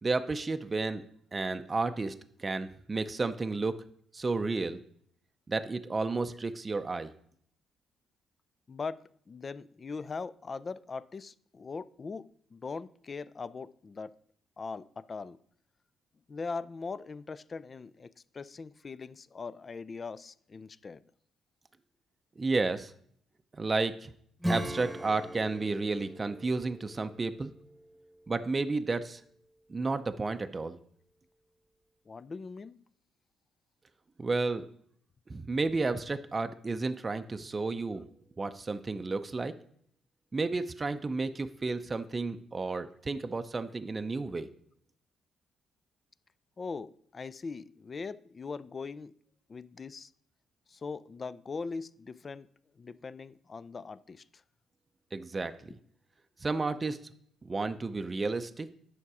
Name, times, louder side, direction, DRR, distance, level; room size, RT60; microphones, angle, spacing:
voice 1, 0.0-1.0 1.3-3.7 4.1-4.8 5.5-7.1 22.4-22.9 23.5-24.1 24.5-27.5 28.3-29.2 29.7-30.8 34.2-34.6 35.3-38.1 38.4-39.5 40.3-44.5 55.1-55.7 56.4-57.0 57.5-58.7, right 3 dB, 30° right, 0.5 m, -32 dB
voice 2, 8.7-14.1 14.6-15.4 16.3-21.0 32.1-32.8 46.6-49.1 49.5-50.1 50.7-52.5 52.8-54.2, left 4 dB, 35° left, 0.4 m, -41 dB
Acoustic guitar / Strum, 24.4-28.7, equal, 10° right, 1.0 m, -39 dB
9.9 x 5.9 x 4.8 m
cardioid pair, 90°, 0 cm